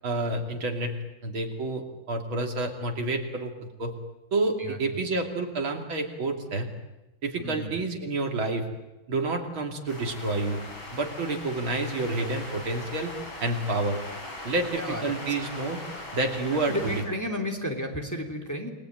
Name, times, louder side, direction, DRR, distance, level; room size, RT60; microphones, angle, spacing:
voice 1, 0.0-1.0 1.2-4.0 4.3-6.7 7.2-8.7 9.1-10.6 10.9-13.1 13.4-14.0 14.4-15.8 16.1-16.9, right 2 dB, 75° right, 3 dB, 3.6 m, -29 dB
voice 2, 7.4-7.8 14.8-15.3 16.7-18.7, equal, 10° left, 2 dB, 3.2 m, -32 dB
sound 1, 9.9-17.0, left 2 dB, 75° left, 6.2 m, -40 dB
29.0 x 21.0 x 9.1 m, 0.99 s
omnidirectional pair, 2.3 m